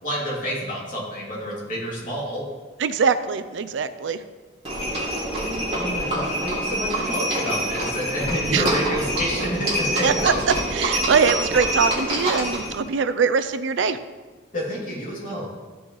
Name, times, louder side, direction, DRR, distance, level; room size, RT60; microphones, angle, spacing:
voice 1, 0.0-2.5 5.7-10.1 14.5-15.5, equal, 45° left, -5 dB, 2.7 m, -28 dB
voice 2, 2.8-4.2 8.5-8.6 10.0-10.3 10.7-14.0 15.3-15.5, right 5 dB, 70° right, 12 dB, 0.4 m, -22 dB
Livestock farm animals working animals, 4.6-12.8, right 1 dB, 35° right, 2.7 m, -26 dB
14.0 x 6.1 x 3.2 m, 1.4 s
head